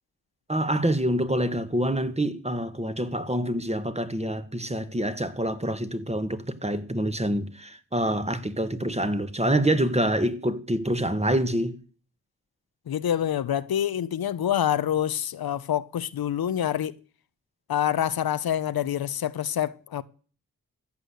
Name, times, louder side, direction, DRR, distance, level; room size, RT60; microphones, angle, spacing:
voice 1, 0.5-11.8, right 1 dB, 20° right, 1.7 m, -26 dB
voice 2, 12.9-17.0 17.7-20.0, left 10 dB, 85° left, 0.8 m, -26 dB
14.0 x 8.3 x 8.1 m
cardioid pair, 50°, 35 cm